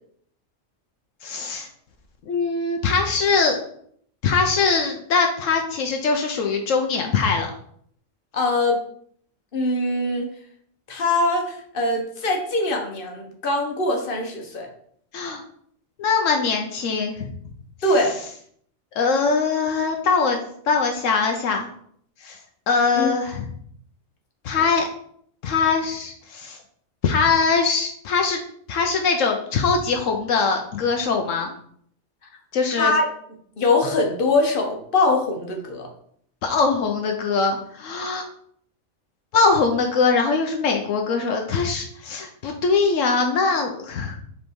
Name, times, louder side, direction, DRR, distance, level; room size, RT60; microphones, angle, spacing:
voice 1, 1.2-1.7 2.3-3.6 4.2-7.5 15.1-15.4 16.0-17.3 19.0-20.4 20.7-21.7 22.2-22.4 22.7-23.5 24.4-24.9 25.4-26.6 27.0-28.4 28.7-31.5 32.5-32.9 36.4-38.3 39.3-44.2, left 4 dB, 80° left, 3 dB, 1.1 m, -22 dB
voice 2, 8.3-8.8 9.5-10.3 10.9-14.7 17.8-18.1 23.0-23.1 32.8-33.1 33.6-35.9, left 2 dB, 45° left, 1 dB, 1.3 m, -22 dB
5.2 x 4.0 x 4.6 m, 0.64 s
omnidirectional pair, 1.3 m